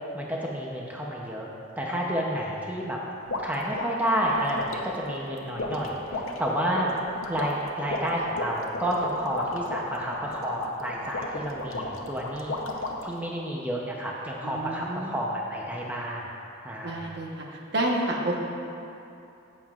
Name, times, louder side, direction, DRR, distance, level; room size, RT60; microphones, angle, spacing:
voice 1, 0.1-1.5 1.8-3.0 3.4-6.9 7.3-12.6 13.0-16.2 16.6-17.0, equal, 10° right, -3 dB, 0.6 m, -30 dB
sound 1, 3.3-13.2, left 2 dB, 80° left, 0.8 m, -35 dB
voice 2, 14.4-15.2 16.8-18.4, right 1 dB, 55° right, -1 dB, 1.0 m, -30 dB
14.0 x 7.3 x 2.4 m, 2.8 s
head